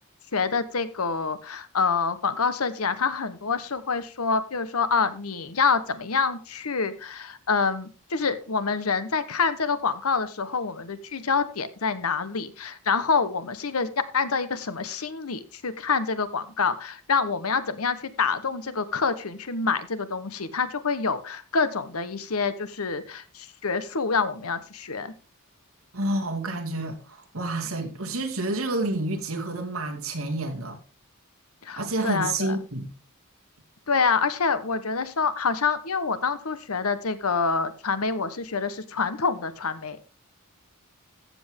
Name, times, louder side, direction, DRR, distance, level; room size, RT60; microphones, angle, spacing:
voice 1, 0.3-25.1 31.6-32.6 33.9-40.1, left 5 dB, 80° left, 1.1 m, -27 dB
voice 2, 25.9-30.8 31.8-32.9, right 2 dB, 70° right, 2.3 m, -29 dB
14.5 x 7.9 x 3.6 m
head